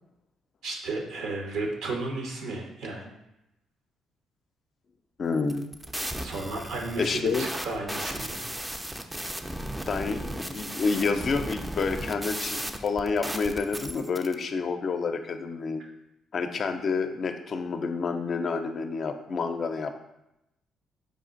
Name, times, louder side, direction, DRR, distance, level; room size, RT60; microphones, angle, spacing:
voice 1, 0.6-3.1 6.2-8.4, right 2 dB, 80° right, 1 dB, 0.9 m, -33 dB
voice 2, 5.2-5.7 7.0-7.5 9.9-15.8 16.3-19.9, left 4 dB, 55° left, 7 dB, 0.4 m, -29 dB
sound 1, 5.4-14.3, right 1 dB, 10° right, 0.4 m, -35 dB
5.0 x 2.4 x 3.8 m, 0.86 s
supercardioid pair, 65°, 0 cm